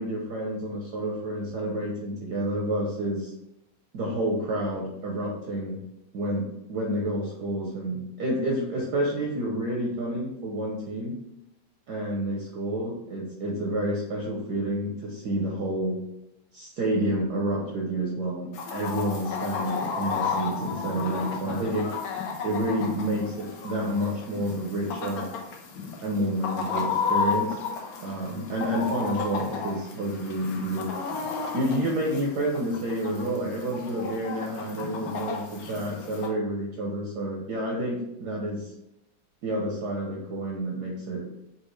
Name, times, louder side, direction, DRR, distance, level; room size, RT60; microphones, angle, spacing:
voice 1, 0.0-3.3 3.9-5.8 6.1-11.2 11.9-16.0 16.5-21.9 22.4-25.3 26.0-27.6 28.0-30.9 31.5-38.7 39.4-41.3, right 1 dB, 70° right, -1 dB, 1.0 m, -29 dB
Chicken rooster, 18.5-36.3, left 5 dB, 75° left, 0.8 m, -33 dB
4.1 x 2.3 x 3.1 m, 0.86 s
omnidirectional pair, 2.2 m